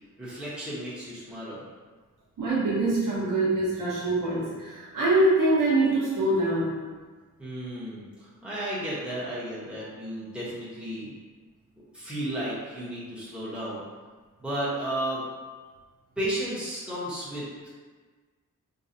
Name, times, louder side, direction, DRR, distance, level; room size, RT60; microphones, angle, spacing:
voice 1, 0.2-1.7 7.4-11.1 11.9-13.8 14.4-15.2 16.2-17.5, right 1 dB, 5° right, -9 dB, 1.1 m, -33 dB
voice 2, 2.4-6.7, right 2 dB, 80° right, -8 dB, 1.1 m, -24 dB
3.8 x 2.4 x 2.7 m, 1.4 s
wide cardioid pair, 100°, 32 cm